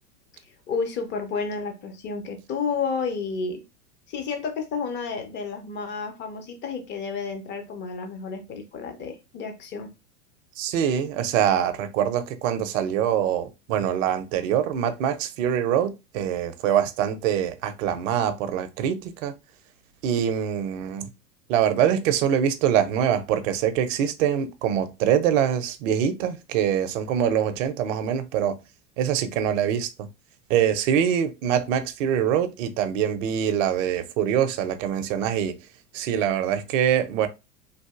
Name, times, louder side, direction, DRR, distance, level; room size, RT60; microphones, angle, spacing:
voice 1, 0.7-3.6 4.1-9.9, left 5 dB, 25° left, 0.6 m, -31 dB
voice 2, 10.6-19.3 20.0-21.1 21.5-28.6 29.0-29.9 30.5-35.6 35.9-37.3, right 9 dB, 50° right, 0.6 m, -24 dB
3.3 x 2.5 x 2.4 m
hypercardioid pair, 100°, 48 cm